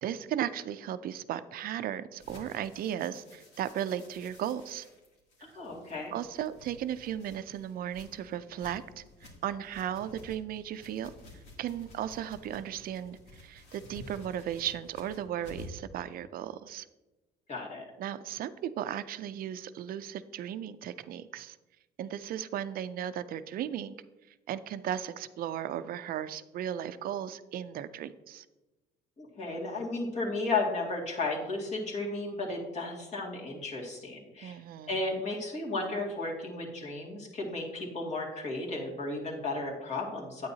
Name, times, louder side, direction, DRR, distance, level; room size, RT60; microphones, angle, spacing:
voice 1, 0.0-4.9 6.1-11.1 11.6-16.9 18.0-21.6 22.0-24.0 24.5-28.5 34.4-35.0, right 10 dB, 60° right, 13 dB, 0.5 m, -36 dB
sound 1, 2.2-15.9, left 1 dB, 75° left, 2.7 m, -52 dB
voice 2, 5.4-6.1 17.5-17.8 29.2-34.6 34.9-40.5, left 3 dB, 40° left, -2 dB, 2.3 m, -34 dB
9.5 x 8.9 x 2.8 m, 1.1 s
cardioid pair, 110°, 17 cm